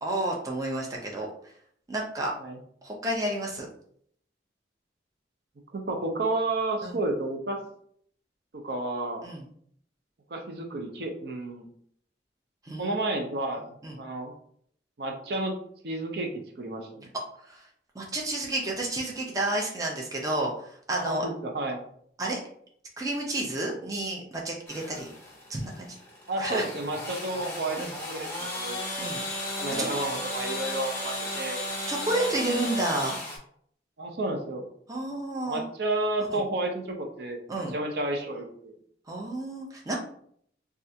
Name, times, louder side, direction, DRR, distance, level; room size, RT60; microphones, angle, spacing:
voice 1, 0.0-1.3 1.9-2.3 2.8-3.7 6.8-7.0 9.2-9.4 12.7-13.0 13.8-14.0 17.5-17.6 17.9-20.5 20.9-21.2 22.2-22.4 23.0-25.1 25.5-26.0 26.4-26.6 27.8-27.9 29.0-29.2 29.8-29.9 31.9-33.2 34.9-35.6 36.3-36.4 37.5-37.7 39.1-40.0, right 1 dB, 20° right, -2 dB, 0.5 m, -30 dB
voice 2, 5.7-7.6 8.5-9.2 10.3-11.7 12.8-13.7 14.0-14.3 15.0-15.6 15.8-17.1 20.9-21.8 26.3-27.8 28.1-28.9 29.6-31.6 34.0-34.7 35.5-38.7, right 2 dB, 65° right, 3 dB, 0.5 m, -31 dB
sound 1, 24.7-33.4, left 1 dB, 15° left, 0.8 m, -35 dB
3.2 x 2.4 x 2.7 m, 0.63 s
head